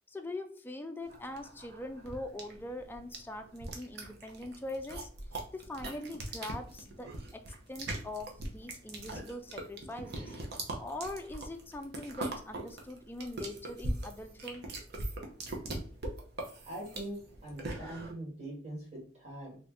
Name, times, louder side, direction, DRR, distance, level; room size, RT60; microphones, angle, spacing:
voice 1, 0.1-5.1 5.5-14.7, left 1 dB, 10° left, 5 dB, 0.3 m, -42 dB
sound 1, 1.1-18.1, right 2 dB, 60° right, 0.8 m, -41 dB
voice 2, 16.6-19.6, right 1 dB, 40° right, -3 dB, 1.7 m, -42 dB
3.1 x 2.6 x 3.4 m, 0.43 s
head